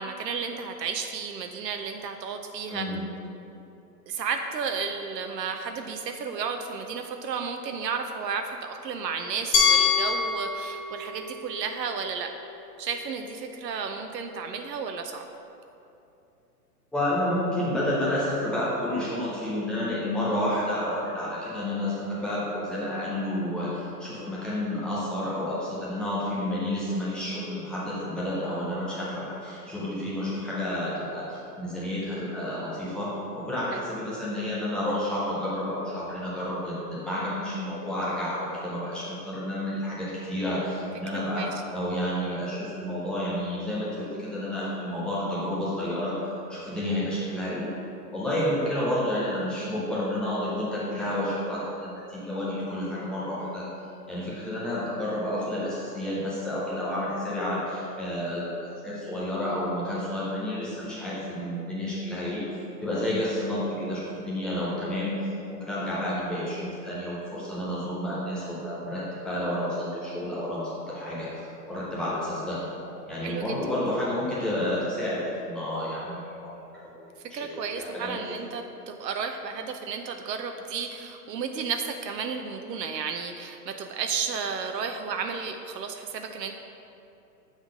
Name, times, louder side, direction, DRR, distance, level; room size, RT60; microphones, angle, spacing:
voice 1, 0.0-2.9 4.1-12.3 12.8-15.3 33.7-33.8 41.3-41.5 73.2-73.4 77.3-86.6, right 5 dB, 85° right, 5 dB, 0.7 m, -33 dB
voice 2, 2.7-3.0 16.9-46.2 46.5-47.7 48.1-53.7 54.1-62.4 62.8-65.2 65.5-72.6 73.1-76.5 76.8-77.0 77.3-78.4, left 1 dB, ahead, -9 dB, 0.4 m, -30 dB
Glass, 9.5-12.4, left 5 dB, 30° left, 0.9 m, -26 dB
7.3 x 3.8 x 5.0 m, 2.8 s
hypercardioid pair, 125°, 48 cm